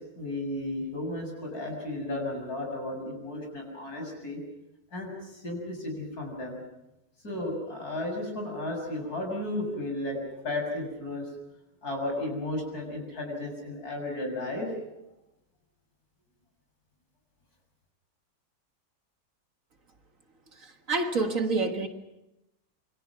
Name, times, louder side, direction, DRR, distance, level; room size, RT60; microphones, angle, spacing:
voice 1, 0.2-4.4 4.9-5.1 5.4-6.6 7.2-10.2 10.4-11.3 11.8-14.7, left 1 dB, 60° left, 2 dB, 7.2 m, -34 dB
voice 2, 20.9-21.9, right 3 dB, 50° right, 5 dB, 1.9 m, -27 dB
28.0 x 23.5 x 6.0 m, 0.92 s
omnidirectional pair, 1.8 m